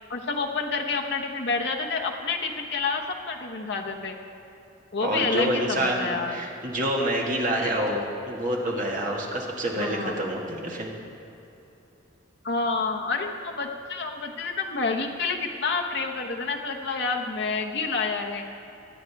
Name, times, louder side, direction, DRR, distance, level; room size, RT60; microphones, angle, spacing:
voice 1, 0.1-4.2 4.9-6.4 9.8-10.2 12.4-18.4, left 4 dB, 60° left, 1 dB, 0.9 m, -28 dB
voice 2, 5.0-10.9, right 1 dB, 40° right, -2 dB, 1.8 m, -27 dB
23.0 x 9.3 x 3.5 m, 3.0 s
head